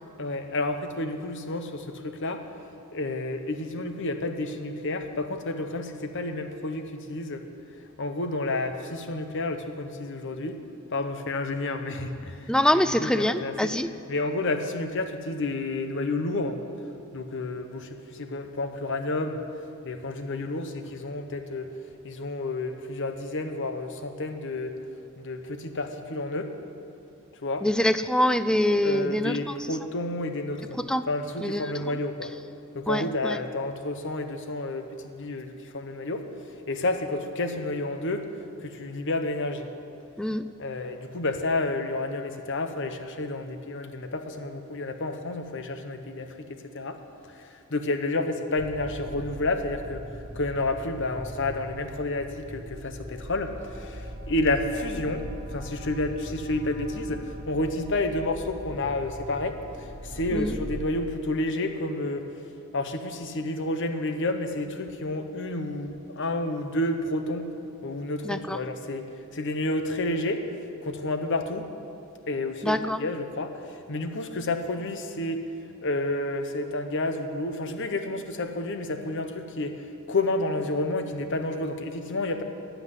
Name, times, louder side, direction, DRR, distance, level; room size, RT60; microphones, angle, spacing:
voice 1, 0.2-2.4 2.9-7.4 8.0-10.6 10.9-13.7 14.1-16.6 17.1-19.4 19.8-21.7 22.0-24.8 25.2-26.5 27.4-27.7 28.8-30.8 31.1-32.3 32.7-36.2 36.7-38.3 38.6-39.7 40.6-47.0 47.3-62.3 62.7-67.5 67.8-71.7 72.3-75.4 75.8-82.4, left 2 dB, 55° left, 7 dB, 1.0 m, -30 dB
voice 2, 12.5-13.9 27.6-29.7 30.9-31.0 31.4-31.7 32.9-33.4 40.2-40.5 60.3-60.6 68.2-68.6 72.6-73.0, left 1 dB, 5° left, 12 dB, 0.3 m, -25 dB
sound 1, 48.5-60.9, equal, 30° right, 2.6 m, -40 dB
15.0 x 5.8 x 9.9 m, 2.7 s
head